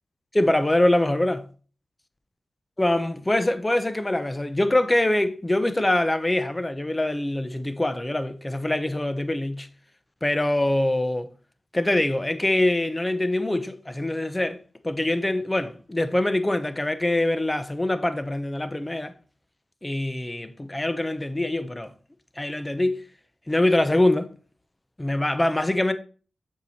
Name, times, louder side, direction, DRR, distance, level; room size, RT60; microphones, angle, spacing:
voice 1, 0.3-1.4 2.8-9.7 10.2-11.3 11.7-14.6 14.8-19.1 19.8-21.9 22.4-23.0 23.5-24.3 25.0-25.9, left 1 dB, 20° left, 0.8 m, -24 dB
7.0 x 4.8 x 4.2 m
cardioid pair, 60°, 0 cm